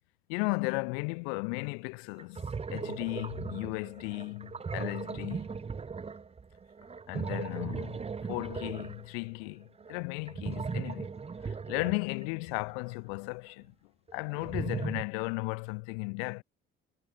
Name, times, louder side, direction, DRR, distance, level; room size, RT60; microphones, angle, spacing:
voice 1, 0.3-5.6 7.1-11.1 11.4-13.7 14.1-16.4, left 37 dB, 80° left, 0.6 m, -35 dB
sound 1, 1.6-1.7 2.2-12.8 14.1-15.0, right 5 dB, 20° right, 0.7 m, -38 dB
hypercardioid pair, 65°, 30 cm